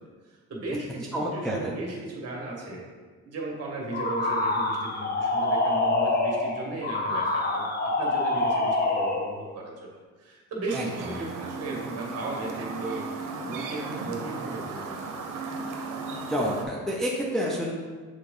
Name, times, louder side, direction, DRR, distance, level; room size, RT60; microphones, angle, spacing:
voice 1, 0.3-2.8 3.2-9.9 10.2-13.0 13.4-15.4, right 2 dB, 50° right, -2 dB, 1.7 m, -36 dB
voice 2, 1.1-1.7 10.7-11.3 16.3-17.7, equal, ahead, -3 dB, 0.7 m, -29 dB
sound 1, 3.9-9.3, left 2 dB, 30° left, 0.8 m, -26 dB
Chirp tweet, 10.7-16.6, right 4 dB, 85° right, 0.8 m, -36 dB
6.8 x 3.7 x 3.8 m, 1.5 s
cardioid pair, 120°, 31 cm